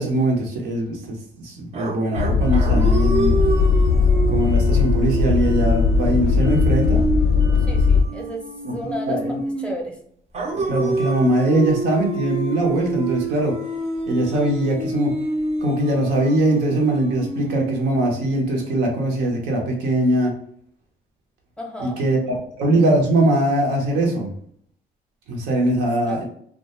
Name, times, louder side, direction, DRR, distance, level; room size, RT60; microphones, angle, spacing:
voice 1, 0.0-3.3 4.3-7.0 8.6-8.7 9.1-9.3 10.7-13.6 14.1-15.1 15.6-20.3 21.8-22.2 22.6-24.3 25.3-26.2, right 1 dB, 85° right, 0 dB, 0.7 m, -21 dB
sound 1, 1.7-9.8 10.3-18.4, right 2 dB, 40° right, 0.5 m, -28 dB
sound 2, 2.2-8.0, left 4 dB, 80° left, 0.5 m, -18 dB
voice 2, 7.6-10.0 21.6-22.4 26.1-26.2, equal, 5° left, 0 dB, 0.5 m, -33 dB
2.3 x 2.2 x 2.9 m, 0.63 s
cardioid pair, 110°, 17 cm